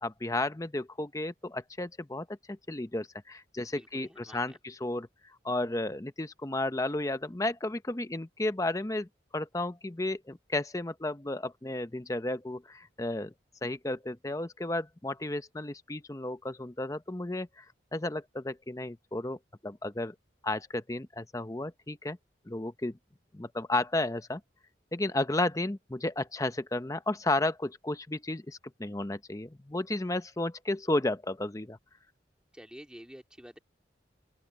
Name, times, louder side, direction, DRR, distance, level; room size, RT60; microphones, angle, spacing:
voice 1, 0.0-5.1 5.4-9.1 9.3-13.3 13.6-17.7 17.9-20.1 20.4-22.2 22.5-23.0 23.3-24.4 24.9-31.8, left 2 dB, 20° left, 0.7 m, -33 dB
voice 2, 3.7-4.6 32.5-33.6, equal, 5° right, 2.3 m, -49 dB
open air
head